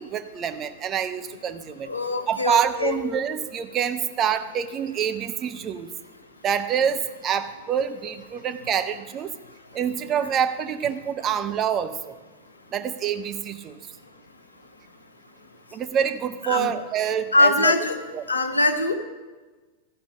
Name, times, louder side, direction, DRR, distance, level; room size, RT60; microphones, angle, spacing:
voice 1, 0.0-1.9 2.3-5.9 6.4-9.3 9.7-12.0 12.7-13.8 15.7-17.7 18.1-18.2, right 8 dB, 30° right, 9 dB, 0.7 m, -26 dB
voice 2, 1.9-3.0 16.5-16.7 17.3-18.0 18.3-18.9, left 2 dB, 75° left, 9 dB, 0.9 m, -22 dB
13.0 x 5.2 x 7.4 m, 1.3 s
figure-of-eight pair, 90°, 0 cm